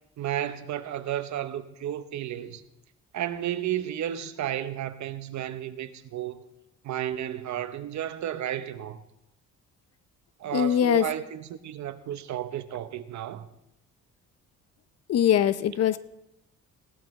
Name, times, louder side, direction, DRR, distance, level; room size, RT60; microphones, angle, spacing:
voice 1, 0.2-2.6 3.1-6.4 6.8-9.0 10.4-13.5, right 11 dB, 70° right, 1.0 m, -33 dB
voice 2, 10.5-11.0 15.1-16.0, left 9 dB, 55° left, 0.6 m, -22 dB
17.5 x 12.0 x 3.2 m
cardioid pair, 90°, 30 cm